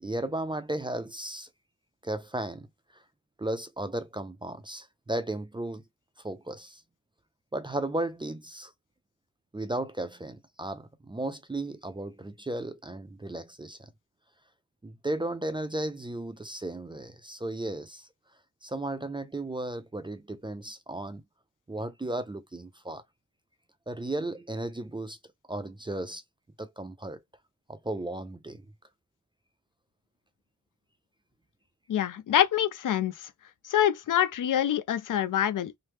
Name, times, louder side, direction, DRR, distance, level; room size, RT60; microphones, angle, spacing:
voice 1, 0.0-1.5 2.0-2.7 3.4-5.8 6.2-6.8 7.5-8.7 9.5-13.9 14.8-18.1 18.6-21.2 21.7-23.0 23.9-25.2 25.5-26.2 26.6-27.2 27.7-28.6, right 1 dB, 15° right, 0.3 m, -35 dB
voice 2, 31.9-33.3 33.7-35.8, left 10 dB, 65° left, 0.5 m, -26 dB
3.0 x 2.0 x 3.2 m
wide cardioid pair, 115°, 33 cm